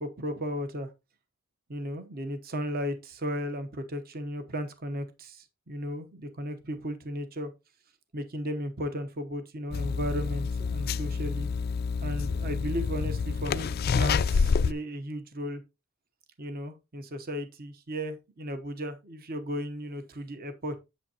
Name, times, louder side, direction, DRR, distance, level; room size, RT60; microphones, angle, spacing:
voice 1, 0.0-0.9 1.7-7.5 8.1-11.5 12.0-15.6 16.4-20.8, equal, 45° right, 1.0 m, -35 dB
sound 1, 9.7-14.7, left 5 dB, 45° left, 0.3 m, -28 dB
8.1 x 7.3 x 2.8 m
head